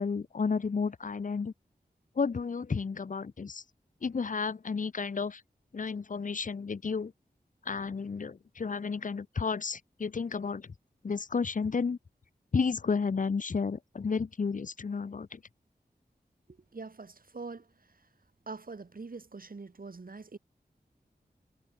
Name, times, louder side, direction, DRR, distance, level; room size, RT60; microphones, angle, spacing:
voice 1, 0.0-1.5 2.2-3.6 4.0-5.4 5.7-7.1 7.7-10.7 11.0-12.0 12.5-15.4, left 5 dB, 50° left, 0.7 m, -32 dB
voice 2, 16.5-17.7 18.5-20.4, right 4 dB, 60° right, 2.9 m, -44 dB
wide cardioid pair, 75°, 17 cm